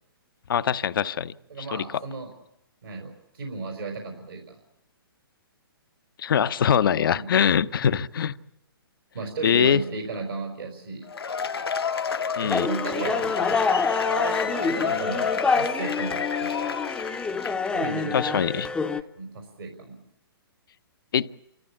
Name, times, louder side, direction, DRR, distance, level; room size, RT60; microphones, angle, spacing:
voice 1, 0.5-1.3 1.7-1.8 6.2-8.3 9.4-9.8 12.4-12.7 18.1-18.7 21.1-21.3, left 8 dB, 60° left, 13 dB, 0.8 m, -22 dB
voice 2, 1.5-2.3 2.8-4.6 7.1-7.3 9.1-11.1 12.4-13.6 14.1-16.7 17.7-18.4 19.0-20.0, right 3 dB, 75° right, 2 dB, 4.8 m, -35 dB
Cheering / Applause / Crowd, 11.1-17.9, left 6 dB, 80° left, 1.2 m, -29 dB
sound 1, 12.5-19.0, left 4 dB, 5° left, 0.8 m, -27 dB
30.0 x 14.0 x 8.5 m, 0.85 s
hypercardioid pair, 130°, 13 cm